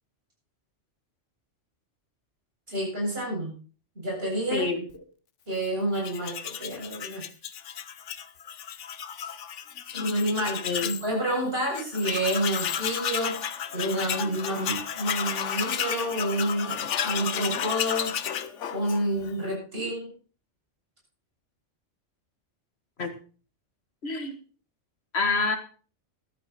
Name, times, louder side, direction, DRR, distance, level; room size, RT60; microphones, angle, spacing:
voice 1, 2.7-3.5 4.0-4.7 5.5-7.2 9.2-9.3 9.9-13.4 13.7-16.8 17.0-18.1 18.7-20.1, right 1 dB, 55° right, -2 dB, 8.1 m, -29 dB
voice 2, 4.5-4.9 10.6-10.9 23.0-23.1 24.0-24.3 25.1-25.6, left 4 dB, 60° left, 8 dB, 1.9 m, -27 dB
Tools, 5.9-11.1 11.4-11.5 11.7-19.3, left 8 dB, 85° left, 1.2 m, -33 dB
14.0 x 12.0 x 4.2 m, 0.38 s
omnidirectional pair, 1.2 m